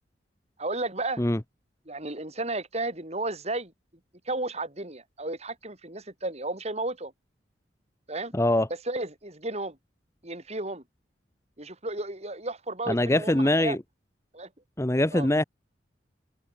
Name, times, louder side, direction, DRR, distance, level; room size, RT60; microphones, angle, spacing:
voice 1, 0.6-1.2 1.9-3.7 4.3-7.1 8.1-8.3 8.9-9.8 10.2-10.8 11.6-13.8 14.3-14.5 15.1-15.3, right 2 dB, 35° right, 6.3 m, -33 dB
voice 2, 8.3-8.7 12.9-13.8 14.8-15.4, left 1 dB, 15° left, 0.9 m, -23 dB
head